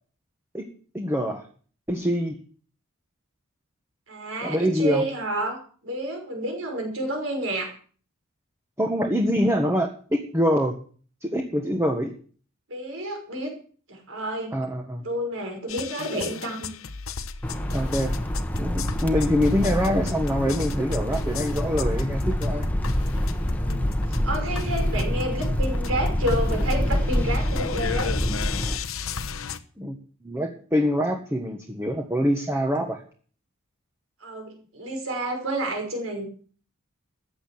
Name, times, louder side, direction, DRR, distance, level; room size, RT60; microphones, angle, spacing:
voice 1, 0.9-1.5 1.9-2.4 4.4-5.0 8.8-10.7 11.2-12.1 14.5-15.0 17.7-18.1 18.6-22.7 29.8-30.0 30.2-33.0, equal, 10° right, 3 dB, 1.5 m, -25 dB
voice 2, 4.1-7.7 12.7-13.5 13.9-14.6 15.0-16.7 23.5-28.2 34.2-36.3, right 1 dB, 65° right, 3 dB, 5.8 m, -30 dB
sound 1, 15.7-29.6, left 5 dB, 70° left, 1.1 m, -35 dB
sound 2, 17.4-28.8, equal, 5° left, 1.3 m, -26 dB
14.5 x 8.8 x 7.8 m, 0.43 s
head